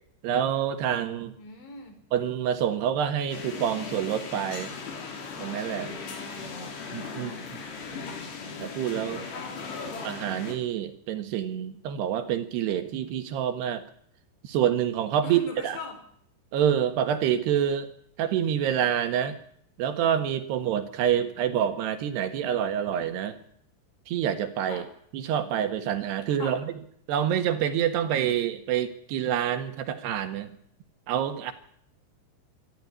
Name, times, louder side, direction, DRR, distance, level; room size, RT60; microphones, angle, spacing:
voice 1, 0.2-1.3 2.1-4.7 5.4-5.9 6.9-7.3 8.6-9.2 10.0-13.8 14.4-15.8 16.5-17.9 18.2-19.4 19.8-23.4 24.1-24.9 25.1-26.7 27.1-30.5 31.1-31.5, right 9 dB, 70° right, 8 dB, 3.4 m, -27 dB
voice 2, 1.4-2.0 5.8-7.6 15.2-16.0 24.7-24.9 26.3-26.6, left 3 dB, 85° left, 6 dB, 6.7 m, -42 dB
sound 1, 3.3-10.6, left 4 dB, 70° left, 5.7 m, -38 dB
25.5 x 13.5 x 9.7 m, 0.66 s
omnidirectional pair, 5.1 m